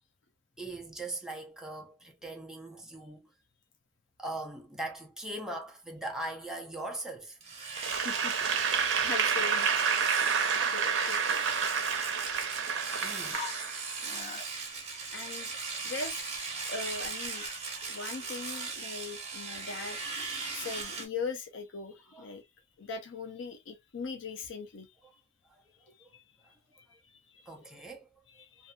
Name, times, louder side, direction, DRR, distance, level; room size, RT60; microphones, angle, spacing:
voice 1, 0.6-3.3 4.2-7.4 13.0-13.4 22.1-22.3 26.0-26.1 27.5-28.1, right 1 dB, 5° right, 0.7 m, -40 dB
Domestic sounds home sounds, 7.4-21.1, right 4 dB, 35° right, 1.1 m, -38 dB
Applause / Crowd, 7.8-14.1, right 6 dB, 90° right, 0.6 m, -29 dB
voice 2, 7.9-9.9 10.5-11.6 14.0-14.4 15.1-15.5 15.8-16.2 16.7-17.4 17.9-22.4 22.8-24.9 25.9-26.2 26.7-27.9 28.3-28.7, left 4 dB, 90° left, 0.6 m, -41 dB
sound 1, 13.3-13.9 14.1-15.0 15.3-15.4 15.6-16.9 17.2-19.0, left 5 dB, 40° left, 0.5 m, -46 dB
2.7 x 2.6 x 2.2 m
head